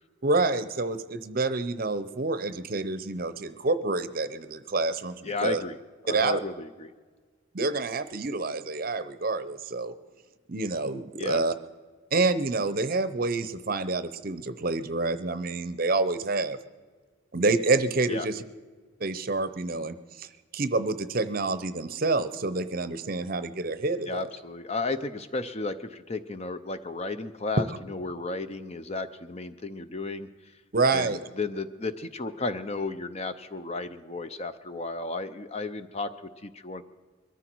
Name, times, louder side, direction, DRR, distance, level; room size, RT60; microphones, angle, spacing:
voice 1, 0.2-5.6 6.1-6.4 7.5-9.9 10.5-11.5 12.1-16.6 17.3-18.4 19.0-20.3 20.5-24.3 27.6-27.7 30.7-31.2, right 3 dB, 45° right, 12 dB, 0.7 m, -27 dB
voice 2, 5.2-5.8 6.0-6.9 11.2-11.4 18.1-18.3 24.1-30.3 30.9-36.8, left 3 dB, 30° left, 11 dB, 0.6 m, -34 dB
22.0 x 14.0 x 4.6 m, 1.5 s
head